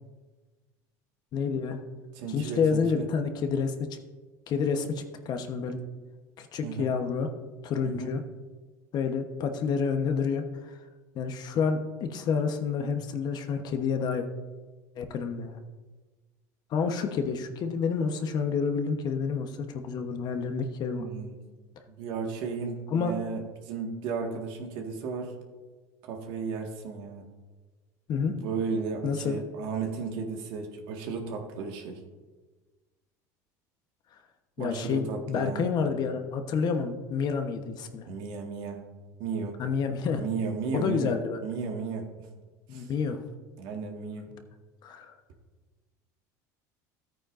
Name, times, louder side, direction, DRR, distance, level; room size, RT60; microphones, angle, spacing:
voice 1, 1.3-1.8 2.3-4.0 4.5-5.8 6.4-7.3 7.6-8.2 8.9-10.7 11.1-14.3 15.0-15.6 16.7-21.1 22.9-23.1 28.1-28.3 29.0-29.4 34.6-38.1 39.6-40.3 40.7-41.4 42.7-43.2 44.8-45.1, left 5 dB, 50° left, 6 dB, 1.1 m, -29 dB
voice 2, 2.2-3.0 6.6-6.9 7.8-8.1 20.9-21.4 22.0-25.3 26.0-27.3 28.3-32.0 34.6-35.7 38.1-38.8 39.2-39.6 40.1-41.1 41.4-42.1 42.7-42.9 43.6-44.3, right 5 dB, 65° right, 2 dB, 1.8 m, -34 dB
13.0 x 9.0 x 2.6 m, 1.3 s
supercardioid pair, 95°, 9 cm